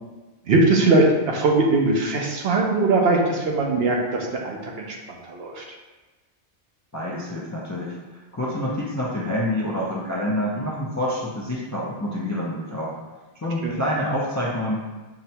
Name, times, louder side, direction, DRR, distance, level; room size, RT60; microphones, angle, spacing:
voice 1, 0.5-5.0 5.2-5.6 13.6-13.7, right 2 dB, 70° right, 0 dB, 0.9 m, -20 dB
voice 2, 6.9-7.9 8.3-13.0 13.4-15.0, left 1 dB, 30° left, -5 dB, 0.3 m, -27 dB
5.8 x 2.1 x 2.8 m, 1.2 s
omnidirectional pair, 1.1 m